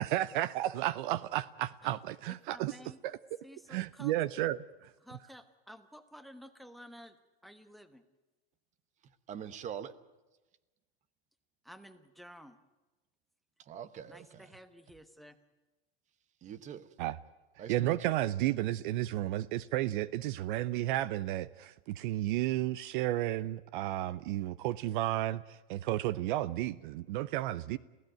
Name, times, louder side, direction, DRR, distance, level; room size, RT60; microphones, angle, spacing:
voice 1, 0.0-3.2 3.7-4.9 17.0-17.2 17.7-27.8, right 14 dB, 55° right, 0.7 m, -33 dB
voice 2, 2.3-3.0 3.4-4.1 5.0-7.2 7.4-8.0 11.6-12.6 14.1-15.4, equal, ahead, 1.2 m, -52 dB
voice 3, 9.0-9.9 13.6-14.6 16.4-16.9 17.6-18.1, right 8 dB, 25° right, 1.1 m, -44 dB
27.5 x 16.5 x 9.2 m
supercardioid pair, 145°, 30 cm